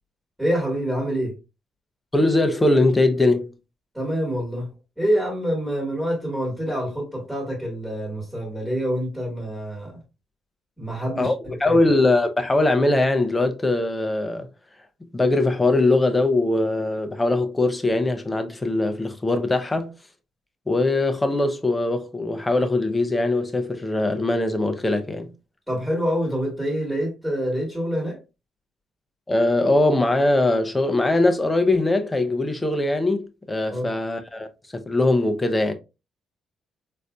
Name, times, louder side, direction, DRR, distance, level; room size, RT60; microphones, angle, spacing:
voice 1, 0.4-1.3 3.9-10.0 10.8-11.3 11.6-11.8 25.7-28.2 33.7-33.9, equal, 5° right, 1.5 m, -26 dB
voice 2, 2.1-3.5 11.2-11.3 11.6-14.5 15.0-20.0 20.7-25.3 29.3-35.7, left 2 dB, 15° left, 0.6 m, -21 dB
4.0 x 2.6 x 2.2 m
cardioid pair, 90°, 0 cm